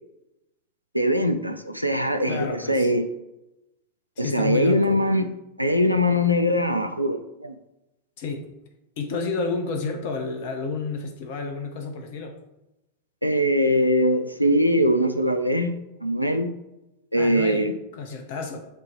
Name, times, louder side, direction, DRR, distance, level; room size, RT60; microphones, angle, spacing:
voice 1, 0.9-3.1 4.2-5.3 5.6-7.6 13.2-16.5 17.1-17.7, equal, 90° right, 6 dB, 0.5 m, -22 dB
voice 2, 2.3-2.9 4.2-5.0 8.2-8.5 9.0-12.4 17.1-18.7, left 4 dB, 50° left, 4 dB, 0.8 m, -30 dB
8.3 x 2.9 x 4.5 m, 0.94 s
figure-of-eight pair, 90°, 0 cm